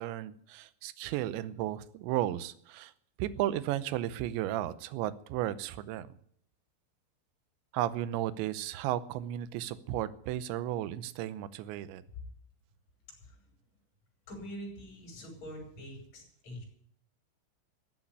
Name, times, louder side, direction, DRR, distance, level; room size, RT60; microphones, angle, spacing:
voice 1, 0.0-2.9 3.2-6.2 7.7-12.0, right 13 dB, 80° right, 14 dB, 3.0 m, -34 dB
voice 2, 14.3-16.6, equal, 35° left, -2 dB, 6.8 m, -44 dB
15.0 x 8.3 x 9.6 m, 0.64 s
omnidirectional pair, 5.4 m